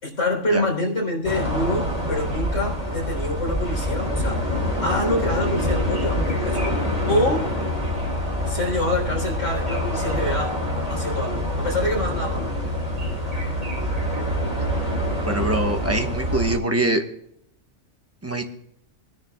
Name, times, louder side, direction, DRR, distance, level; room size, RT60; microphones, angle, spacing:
voice 1, 0.0-4.4 4.8-6.8 7.1-7.5 8.5-10.6 10.9-12.5, left 1 dB, 90° left, -1 dB, 4.2 m, -26 dB
sound 1, 1.2-16.6, equal, 30° right, 2.8 m, -25 dB
voice 2, 15.3-17.0 18.2-18.4, right 1 dB, 10° right, 4 dB, 1.2 m, -23 dB
24.0 x 10.5 x 2.3 m, 0.75 s
omnidirectional pair, 1.2 m